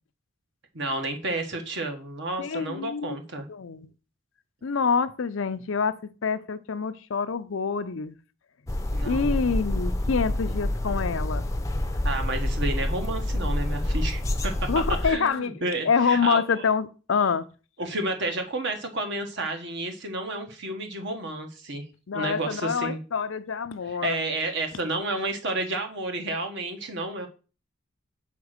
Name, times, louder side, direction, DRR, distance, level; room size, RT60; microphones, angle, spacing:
voice 1, 0.7-3.4 8.9-9.4 12.0-14.7 15.0-16.6 17.8-21.8 22.1-23.0 23.9-27.3, right 2 dB, 60° right, 1.4 m, -31 dB
voice 2, 2.4-3.2 3.5-3.9 4.6-6.0 6.2-8.2 9.0-11.5 14.7-15.6 15.8-17.4 22.1-24.2, left 5 dB, 65° left, 0.5 m, -26 dB
sound 1, 8.7-15.1, left 1 dB, 15° left, 0.6 m, -27 dB
5.9 x 4.4 x 6.5 m
head